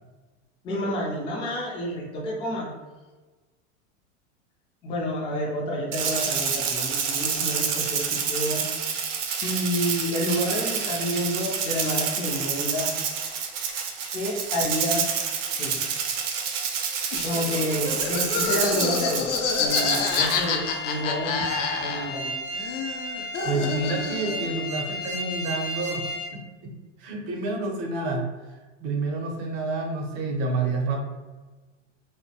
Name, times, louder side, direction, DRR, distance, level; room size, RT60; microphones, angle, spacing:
voice 1, 0.6-2.7 4.8-8.6 9.3-12.9 14.1-15.1 15.6-15.8 17.2-22.4, equal, 15° left, -3 dB, 0.3 m, -29 dB
Rattle (instrument), 5.9-20.4, right 6 dB, 85° right, 0.6 m, -28 dB
Laughter, 17.1-22.3 22.5-24.5, left 5 dB, 85° left, 0.6 m, -28 dB
sound 1, 19.7-26.3, left 1 dB, 55° left, 0.8 m, -34 dB
voice 2, 23.4-31.0, right 3 dB, 45° right, 1 dB, 0.6 m, -29 dB
2.2 x 2.1 x 2.7 m, 1.3 s
supercardioid pair, 130°, 36 cm